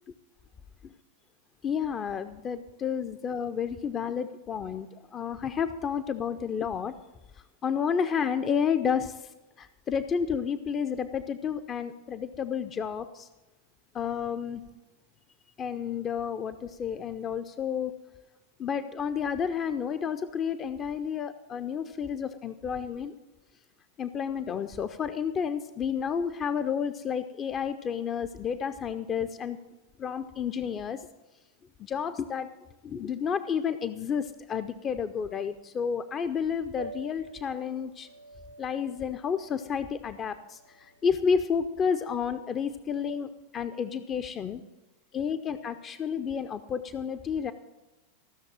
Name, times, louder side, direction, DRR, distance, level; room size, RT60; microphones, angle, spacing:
voice 1, 1.6-6.9 7.6-9.3 9.6-13.3 13.9-14.6 15.6-17.9 18.6-23.1 24.0-29.6 30.0-31.1 31.8-32.5 32.8-38.1 38.6-44.6 45.1-47.5, left 7 dB, 25° left, 10 dB, 0.5 m, -31 dB
Piano, 36.7-42.7, right 2 dB, 85° right, 0.5 m, -48 dB
15.0 x 6.5 x 7.3 m, 1.1 s
figure-of-eight pair, 90°, 0 cm